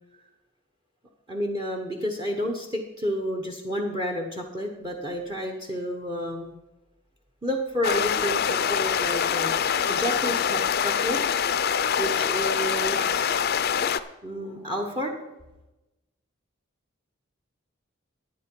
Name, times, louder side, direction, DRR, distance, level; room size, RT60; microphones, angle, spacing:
voice 1, 1.3-6.6 7.4-11.2 12.0-13.6 14.2-15.4, equal, 20° right, 3 dB, 1.0 m, -31 dB
sound 1, 7.8-14.0, left 7 dB, 50° left, 0.5 m, -25 dB
12.0 x 9.6 x 4.6 m, 0.99 s
head